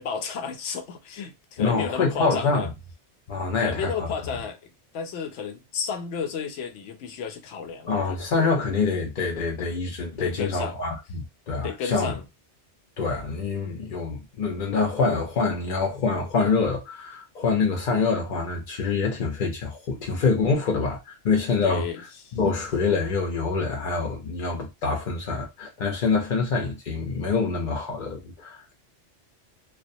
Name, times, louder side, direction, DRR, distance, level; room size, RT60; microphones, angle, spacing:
voice 1, 0.0-2.7 3.6-8.2 10.2-10.8 11.6-12.2 21.6-22.4, left 6 dB, 85° left, 0.9 m, -32 dB
voice 2, 1.6-2.7 3.3-3.9 7.9-12.1 13.0-21.9 22.3-28.7, left 4 dB, 55° left, 0.6 m, -26 dB
2.3 x 2.2 x 2.6 m
omnidirectional pair, 1.2 m